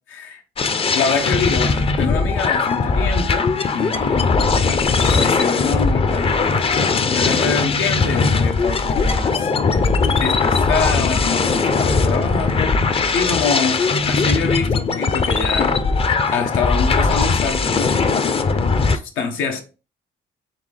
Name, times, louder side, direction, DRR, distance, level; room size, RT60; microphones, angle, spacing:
voice 1, 0.1-0.4 0.9-4.2 4.6-9.8 10.2-12.8 13.1-13.8 14.1-15.8 16.3-18.0 18.5-18.7 19.2-19.6, left 5 dB, 90° left, 0.8 m, -25 dB
sound 1, 0.6-19.0, left 4 dB, 30° left, 0.4 m, -19 dB
4.0 x 3.4 x 3.3 m
cardioid pair, 90°, 20 cm